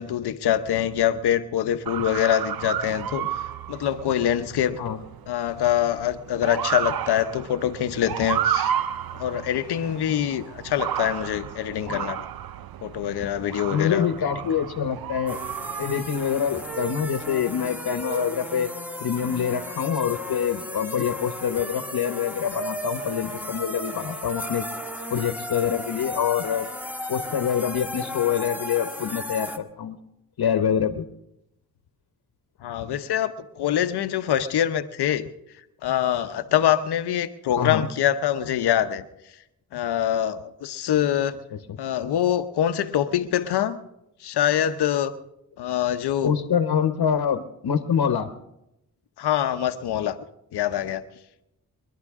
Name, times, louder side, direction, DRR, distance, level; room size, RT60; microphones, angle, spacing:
voice 1, 0.0-3.3 3.7-4.8 5.3-8.7 9.1-12.2 12.8-14.1 32.6-35.3 35.8-39.0 39.7-41.4 41.8-43.8 44.2-45.1 45.6-46.3 49.2-50.2 50.5-51.0, left 10 dB, 90° left, 11 dB, 0.8 m, -24 dB
Motor vehicle (road) / Siren, 1.9-17.4, right 10 dB, 65° right, 0.6 m, -32 dB
voice 2, 13.7-15.4 15.8-18.7 19.0-24.7 25.1-26.7 27.1-30.0 30.4-31.0 37.6-37.9 46.2-48.3, left 8 dB, 70° left, 9 dB, 1.1 m, -25 dB
sound 1, 15.3-29.6, left 1 dB, 5° right, 1.5 m, -34 dB
29.5 x 11.0 x 3.6 m, 0.87 s
cardioid pair, 55°, 38 cm